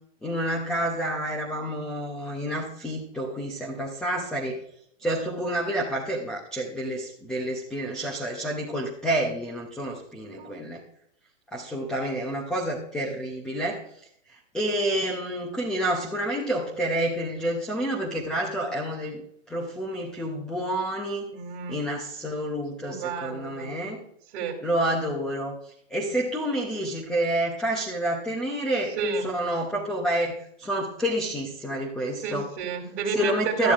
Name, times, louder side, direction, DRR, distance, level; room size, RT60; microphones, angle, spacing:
voice 1, 0.2-4.6 5.0-10.8 11.5-13.8 14.5-19.2 19.5-21.2 21.7-24.0 24.6-25.5 25.9-29.0 29.2-32.5 33.1-33.7, right 1 dB, ahead, -2 dB, 0.5 m, -29 dB
voice 2, 21.3-21.8 22.9-23.7 24.3-24.6 29.0-29.2 32.2-33.7, right 4 dB, 40° right, 3 dB, 2.9 m, -30 dB
13.0 x 12.0 x 2.4 m, 0.69 s
hypercardioid pair, 155°, 39 cm